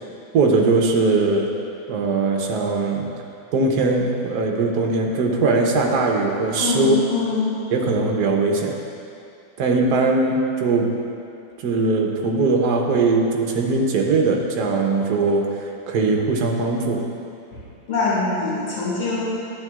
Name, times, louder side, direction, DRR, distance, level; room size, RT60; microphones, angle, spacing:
voice 1, 0.3-1.5 1.9-3.1 3.5-7.0 7.7-8.8 9.6-11.0 11.6-17.1, right 3 dB, 60° right, 1 dB, 1.1 m, -20 dB
voice 2, 6.6-7.5 17.5-17.6 17.9-19.2, left 4 dB, 90° left, -9 dB, 3.2 m, -23 dB
12.0 x 9.1 x 2.4 m, 2.6 s
omnidirectional pair, 2.4 m